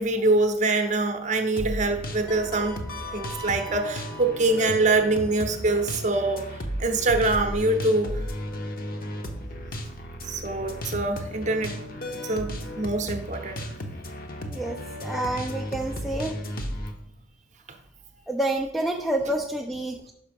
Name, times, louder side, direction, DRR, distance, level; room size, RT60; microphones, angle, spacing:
voice 1, 0.0-2.8 3.1-6.4 6.8-8.2 10.3-11.8 12.2-13.6, right 2 dB, 35° right, 6 dB, 0.7 m, -24 dB
sound 1, 1.6-16.9, equal, 45° left, 0.8 m, -34 dB
voice 2, 14.5-16.3 18.3-20.1, right 1 dB, ahead, 2 dB, 0.4 m, -28 dB
5.8 x 5.5 x 5.2 m, 0.76 s
head